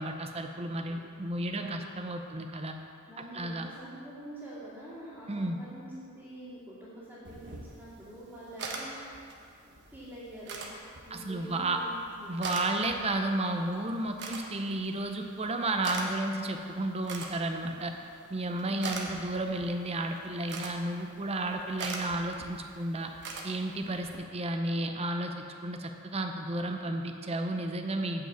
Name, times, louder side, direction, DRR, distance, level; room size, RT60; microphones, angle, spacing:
voice 1, 0.0-2.7 3.3-3.7 5.3-5.6 11.1-11.8 12.3-18.0 18.3-23.1 23.4-25.3 25.6-28.3, right 2 dB, 30° right, 5 dB, 0.6 m, -32 dB
voice 2, 1.5-1.9 2.2-2.4 3.1-9.0 9.6-10.7 11.0-12.3 18.6-19.0, right 1 dB, 5° right, -14 dB, 2.2 m, -46 dB
sound 1, 7.2-24.2, right 3 dB, 55° right, 1.1 m, -44 dB
8.9 x 5.0 x 7.2 m, 2.4 s
head